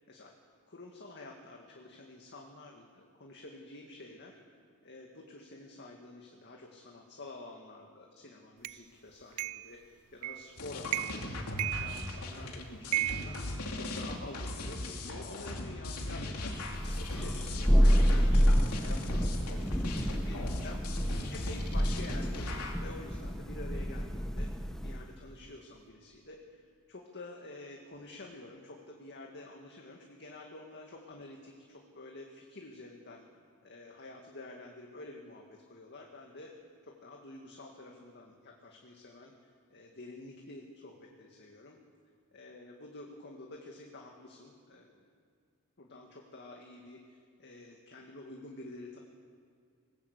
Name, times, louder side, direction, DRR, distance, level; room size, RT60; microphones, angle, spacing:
voice 1, 0.7-4.4 4.8-19.9 20.2-26.6 26.9-33.2 33.6-36.5 36.8-39.3 39.7-41.8 42.3-45.0 45.8-49.0, left 2 dB, 50° left, 1 dB, 2.0 m, -49 dB
sound 1, 8.6-8.8 9.4-9.7 10.2-10.5 10.9-11.3 11.6-12.4 12.9-14.2, right 16 dB, 85° right, 0.5 m, -35 dB
sound 2, 10.6-22.8, left 2 dB, 90° left, 2.7 m, -39 dB
Thunder, 16.7-25.1, equal, ahead, 0.9 m, -29 dB
21.0 x 19.5 x 8.3 m, 2.2 s
head